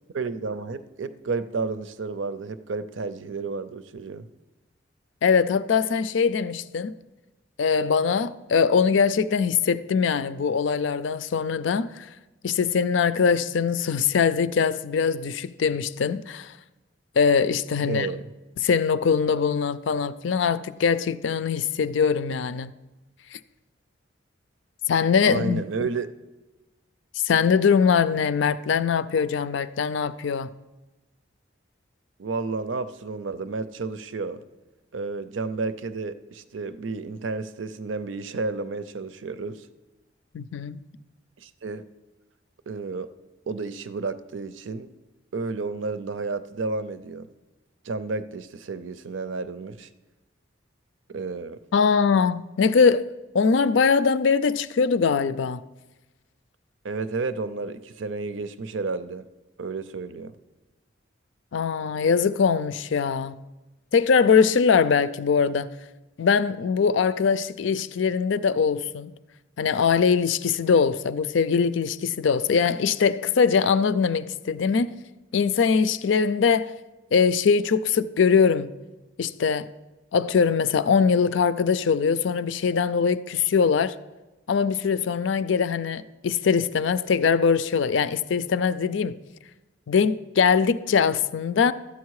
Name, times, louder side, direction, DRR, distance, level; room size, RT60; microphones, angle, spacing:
voice 1, 0.1-4.3 17.8-18.3 25.3-26.1 32.2-34.4 34.9-39.7 41.4-41.8 42.7-43.1 43.5-44.9 45.3-47.3 47.8-49.9 51.1-51.6 56.8-59.2 59.6-60.3, right 4 dB, 85° right, 0.6 m, -31 dB
voice 2, 5.2-7.0 7.6-12.1 12.4-16.5 17.2-18.1 18.6-22.7 23.3-23.4 24.9-25.6 27.2-30.5 40.3-40.8 51.7-53.0 53.3-55.6 61.5-63.4 63.9-65.7 66.2-69.1 69.6-74.9 75.3-76.7 77.1-78.7 79.2-79.7 80.1-83.9 84.5-89.2 89.9-91.7, left 6 dB, 70° left, 0.4 m, -22 dB
12.5 x 8.3 x 4.8 m
head